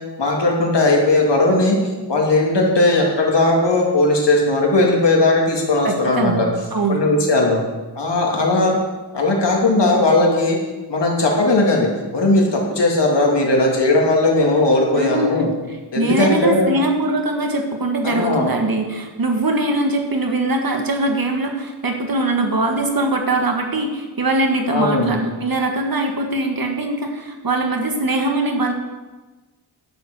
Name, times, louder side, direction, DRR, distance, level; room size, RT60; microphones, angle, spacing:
voice 1, 0.2-1.8 2.1-6.5 6.9-7.6 7.9-8.8 9.1-10.6 10.9-11.9 12.1-15.5 15.9-16.7 18.0-18.5 24.7-25.1, left 2 dB, 65° left, -1 dB, 2.9 m, -17 dB
voice 2, 5.8-7.1 14.9-15.5 15.9-28.7, right 2 dB, 50° right, 3 dB, 1.9 m, -21 dB
11.5 x 7.2 x 8.0 m, 1.2 s
wide cardioid pair, 95°, 45 cm